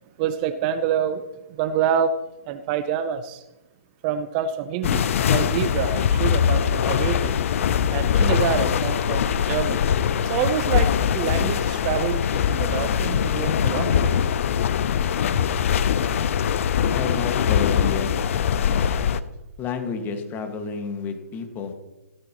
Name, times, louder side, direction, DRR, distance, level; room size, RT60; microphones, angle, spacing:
voice 1, 0.2-1.2 1.5-2.2 2.5-3.4 4.0-7.3 7.9-9.8 10.1-14.2, right 8 dB, 30° right, 11 dB, 0.7 m, -27 dB
sound 1, 4.8-19.2, left 8 dB, 55° left, 0.7 m, -22 dB
voice 2, 17.0-18.1 18.6-18.9 19.6-21.7, left 6 dB, 20° left, 5 dB, 1.8 m, -30 dB
16.0 x 13.5 x 3.1 m, 1.0 s
hypercardioid pair, 130°, 9 cm